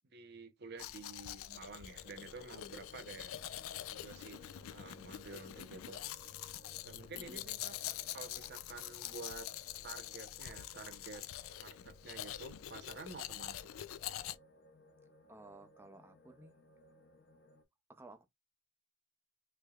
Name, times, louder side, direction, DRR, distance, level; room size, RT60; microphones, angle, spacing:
voice 1, 0.0-3.3 3.9-4.4 4.7-6.0 6.8-7.8 8.1-9.5 9.8-11.2 11.6-13.7, right 3 dB, 50° right, 0.7 m, -50 dB
Domestic sounds home sounds, 0.8-14.4, left 12 dB, 75° left, 0.3 m, -45 dB
sound 1, 1.8-17.6, left 2 dB, 55° left, 0.8 m, -62 dB
voice 2, 7.1-7.4 15.3-16.6 17.9-18.2, right 2 dB, 10° right, 0.5 m, -55 dB
3.3 x 3.2 x 2.3 m
head